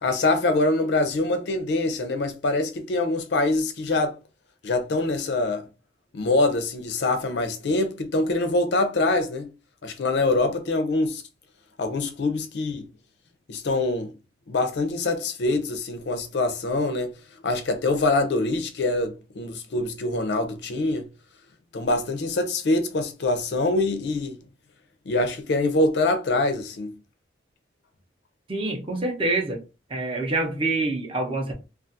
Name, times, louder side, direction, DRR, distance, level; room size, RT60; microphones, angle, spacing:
voice 1, 0.0-4.2 4.6-5.7 6.1-9.5 9.8-11.2 11.8-12.8 13.5-14.1 14.5-17.2 17.4-21.1 21.7-24.4 25.1-27.0, left 2 dB, 65° left, 0.4 m, -24 dB
voice 2, 28.5-29.6 29.9-31.5, right 2 dB, 30° right, 0.6 m, -26 dB
2.4 x 2.4 x 2.6 m
head